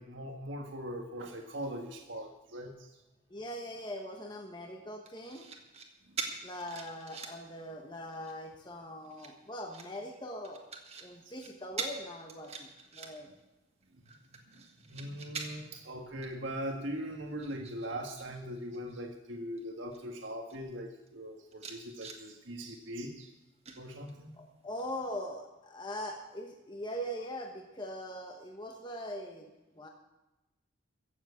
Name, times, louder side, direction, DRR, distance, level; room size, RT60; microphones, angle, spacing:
voice 1, 0.0-2.9 6.1-6.2 13.9-14.0 14.5-23.3 23.8-24.3, equal, 70° right, 2 dB, 1.6 m, -41 dB
voice 2, 3.3-5.5 6.4-10.6 11.0-13.3 24.4-29.5 29.8-29.9, equal, 20° left, 2 dB, 1.3 m, -41 dB
sound 1, 5.0-5.9 6.2-7.5 7.9-8.4 9.0-9.9 10.4-11.1 11.4-11.5 11.8-12.0 12.3-13.4 13.8-15.8 16.2-16.4 16.7-18.3 18.5-18.9 19.6-19.7 19.9-20.6 21.1-21.2 21.5-22.2 23.6-24.3 24.8-24.9, right 5 dB, 30° right, 1.6 m, -43 dB
15.5 x 7.5 x 8.4 m, 0.98 s
head